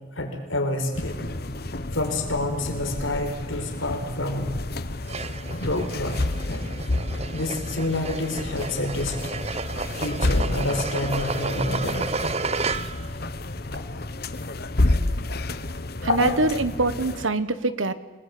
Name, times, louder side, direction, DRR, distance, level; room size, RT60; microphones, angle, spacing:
voice 1, 0.2-1.2 1.9-4.5 5.6-6.2 6.5-6.6 7.3-9.2 10.0-12.1 13.8-13.9 16.1-16.4, left 2 dB, 80° left, 5 dB, 4.7 m, -28 dB
sound 1, 0.9-17.3, left 2 dB, 50° left, 1.2 m, -30 dB
sound 2, 5.0-13.1, right 4 dB, 30° right, 0.8 m, -32 dB
voice 2, 16.0-17.9, right 3 dB, 80° right, 13 dB, 1.4 m, -24 dB
30.0 x 20.0 x 8.6 m, 1.3 s
head